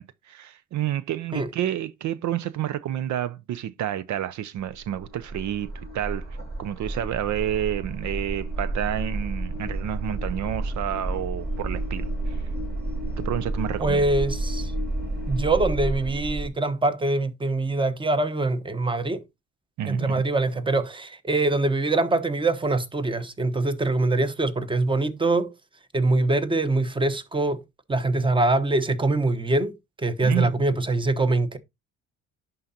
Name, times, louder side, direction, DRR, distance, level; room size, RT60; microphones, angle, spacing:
voice 1, 0.0-6.2 6.6-12.4 13.2-14.0 19.8-20.2 30.2-30.5, right 11 dB, 70° right, 0.6 m, -29 dB
sound 1, 4.7-16.5, right 2 dB, 35° right, 5.4 m, -31 dB
voice 2, 13.8-14.7 15.3-19.2 19.9-25.5 25.9-27.6 27.9-31.6, right 2 dB, 15° right, 1.0 m, -24 dB
11.0 x 3.9 x 2.7 m
cardioid pair, 90°, 30 cm